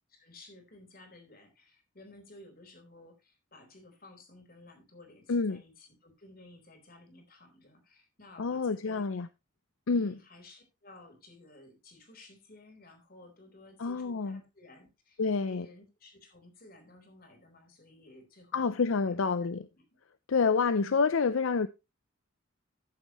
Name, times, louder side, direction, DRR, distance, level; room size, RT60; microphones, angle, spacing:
voice 1, 0.1-9.1 9.9-19.8, left 2 dB, 45° left, 3.8 m, -55 dB
voice 2, 5.3-5.6 8.4-9.3 9.9-10.2 13.8-14.4 15.2-15.7 18.5-19.7 20.3-21.7, left 4 dB, 75° left, 0.5 m, -28 dB
14.5 x 7.4 x 3.0 m
head